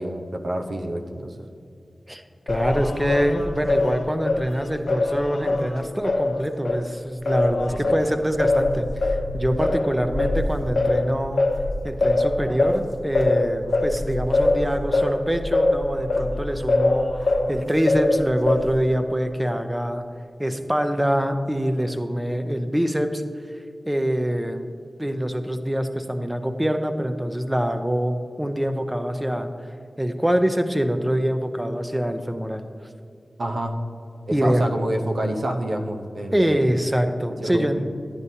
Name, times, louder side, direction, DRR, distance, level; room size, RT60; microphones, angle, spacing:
voice 1, 0.0-1.5 7.8-7.9 13.7-13.8 33.4-33.7 34.3-36.6 37.4-37.8, right 1 dB, 75° right, 3 dB, 0.8 m, -28 dB
voice 2, 2.1-11.4 11.8-20.0 20.4-23.2 23.9-24.7 25.0-29.5 30.0-32.7 34.3-34.7 36.3-37.8, equal, 15° right, 8 dB, 0.7 m, -24 dB
Singing, 2.5-6.8 7.2-17.5 17.9-18.9, left 2 dB, 90° left, 0.8 m, -23 dB
11.0 x 9.6 x 2.8 m, 2.4 s
wide cardioid pair, 55°, 0 cm